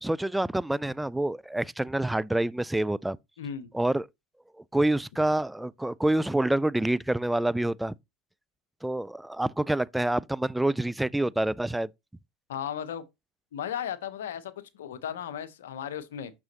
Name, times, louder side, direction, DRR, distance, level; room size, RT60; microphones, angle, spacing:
voice 1, 0.0-3.2 3.7-4.1 4.7-7.9 8.8-11.9, right 1 dB, 5° right, 0.3 m, -27 dB
voice 2, 3.4-3.7 12.5-13.0 13.5-16.3, left 9 dB, 80° left, 0.9 m, -35 dB
6.2 x 6.1 x 2.8 m
hypercardioid pair, 90°, 0 cm